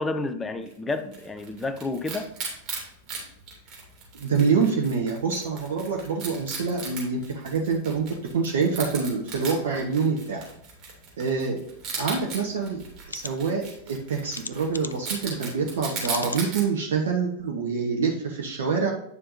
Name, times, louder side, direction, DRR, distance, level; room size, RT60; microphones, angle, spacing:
voice 1, 0.0-2.3, left 2 dB, 15° left, 0.7 m, -30 dB
Wild animals, 0.7-16.6, right 4 dB, 35° right, 2.8 m, -38 dB
voice 2, 4.1-8.1 8.3-10.4 11.2-11.6 11.9-12.8 13.1-18.9, right 5 dB, 60° right, 1.0 m, -26 dB
sound 1, 12.3-12.4 13.0-13.3 14.3-15.1 16.0-16.5 17.0-17.1 17.5-17.6, left 4 dB, 75° left, 0.4 m, -37 dB
9.5 x 5.6 x 2.7 m
figure-of-eight pair, 90°, 0 cm